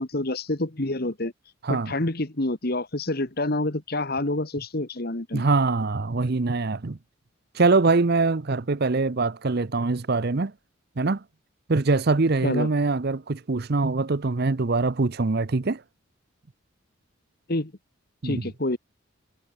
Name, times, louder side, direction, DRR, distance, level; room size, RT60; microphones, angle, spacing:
voice 1, 0.0-1.3 1.7-5.4 12.4-12.7 17.5-17.7 18.2-18.8, left 2 dB, 50° left, 1.7 m, -27 dB
voice 2, 5.3-7.0 7.5-10.5 11.0-11.2 11.7-15.8 18.2-18.5, right 3 dB, 50° right, 0.7 m, -23 dB
head